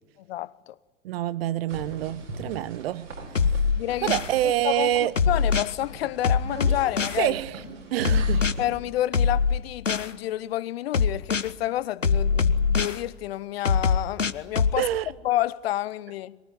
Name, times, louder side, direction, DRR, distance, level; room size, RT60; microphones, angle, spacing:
voice 1, 0.3-0.8 3.7-4.1 4.4-7.3 8.6-14.9 15.2-16.4, left 14 dB, 55° left, 0.9 m, -29 dB
voice 2, 1.0-3.1 3.4-3.6 4.0-5.1 7.2-7.6 7.9-8.5 14.8-15.1, right 13 dB, 55° right, 1.1 m, -26 dB
sound 1, 1.7-8.7, right 2 dB, 75° right, 7.0 m, -40 dB
sound 2, 3.4-4.3 5.2-5.7 6.2-7.2 8.1-8.5 9.1-10.1 10.9-11.5 12.0-13.0 13.7-14.8, left 5 dB, 85° left, 1.0 m, -22 dB
23.5 x 23.0 x 10.0 m
figure-of-eight pair, 90°, 37 cm